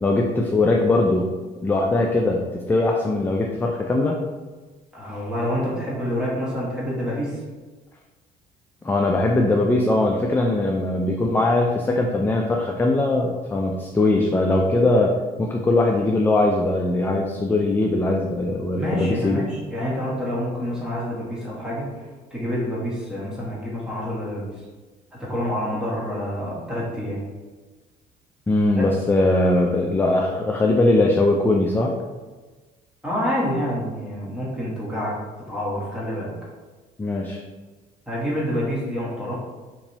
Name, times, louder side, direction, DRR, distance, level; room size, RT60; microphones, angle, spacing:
voice 1, 0.0-1.3 1.6-4.2 8.8-19.5 28.5-31.9 37.0-37.4, left 2 dB, 10° left, 1 dB, 0.3 m, -20 dB
voice 2, 4.9-7.4 18.8-24.5 25.1-27.2 28.8-28.9 33.0-35.1 35.5-36.3 38.1-39.3, equal, 5° right, -7 dB, 1.4 m, -27 dB
3.0 x 2.6 x 4.0 m, 1.3 s
cardioid pair, 110°, 17 cm